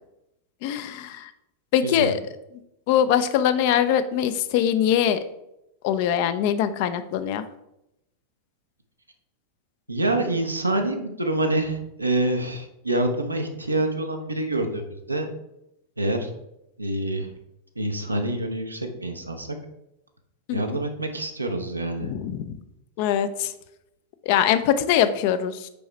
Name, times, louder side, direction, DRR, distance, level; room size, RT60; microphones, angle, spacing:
voice 1, 0.6-1.3 1.7-2.2 2.9-5.2 5.8-7.4 20.5-20.6 22.0-22.6 23.0-23.5 24.2-25.7, left 9 dB, 45° left, 11 dB, 0.5 m, -22 dB
voice 2, 1.8-2.1 9.9-15.3 16.0-16.3 16.8-17.3 17.7-19.6 20.5-22.1, right 1 dB, 85° right, 3 dB, 0.9 m, -26 dB
5.3 x 4.8 x 4.4 m, 0.85 s
figure-of-eight pair, 90°, 0 cm